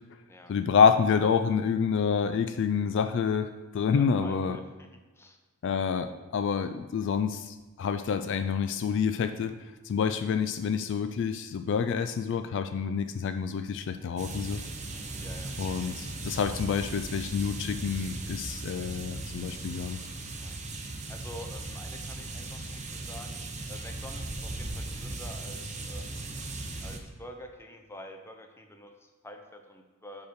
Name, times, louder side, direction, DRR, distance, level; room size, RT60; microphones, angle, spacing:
voice 1, 0.5-4.6 5.6-9.5 9.8-14.6 15.6-20.0, left 6 dB, 55° left, 9 dB, 0.3 m, -28 dB
voice 2, 3.9-4.9 5.1-5.4 9.9-10.2 14.9-15.5 20.3-20.6 21.1-23.4 23.7-26.4 26.8-30.3, left 1 dB, 10° left, 4 dB, 0.6 m, -47 dB
sound 1, 14.2-27.0, right 2 dB, 30° right, 0.7 m, -38 dB
5.3 x 5.1 x 6.3 m, 1.2 s
head